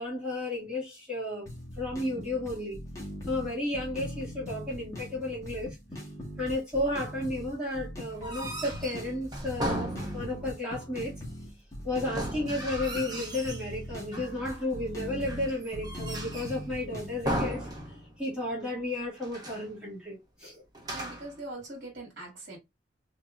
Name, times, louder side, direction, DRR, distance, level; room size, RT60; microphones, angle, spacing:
voice 1, 0.0-1.5 1.8-2.8 3.2-5.8 6.4-11.1 11.8-17.7 18.2-20.6, left 1 dB, 5° right, 2.1 m, -33 dB
sound 1, 1.5-17.4, left 1 dB, 15° left, 1.5 m, -41 dB
sound 2, 8.1-10.6 12.0-13.7 14.1-14.7 15.3-16.7 17.2-18.3 18.6-18.7 19.2-19.7 20.7-21.4, right 1 dB, 20° right, 0.9 m, -36 dB
voice 2, 20.9-22.6, right 2 dB, 55° right, 2.0 m, -42 dB
3.9 x 3.5 x 2.4 m
head